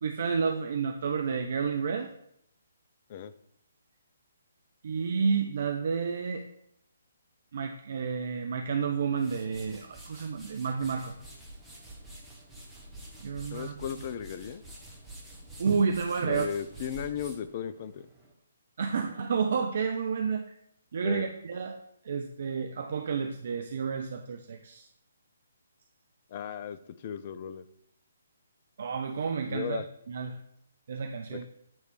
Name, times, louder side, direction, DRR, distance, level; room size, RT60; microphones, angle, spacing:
voice 1, 0.0-2.1 4.8-6.5 7.5-11.2 13.2-13.7 15.6-16.5 18.8-20.5 20.9-21.8 22.0-24.9 28.8-30.4 30.9-31.5, right 5 dB, 50° right, 4 dB, 0.5 m, -30 dB
sound 1, 8.9-18.3, right 1 dB, ahead, 1.2 m, -48 dB
voice 2, 13.5-14.6 16.2-18.1 21.0-21.3 26.3-27.6 29.5-29.9 31.3-31.5, left 8 dB, 35° left, 14 dB, 0.4 m, -36 dB
9.0 x 3.3 x 4.6 m, 0.73 s
figure-of-eight pair, 135°, 0 cm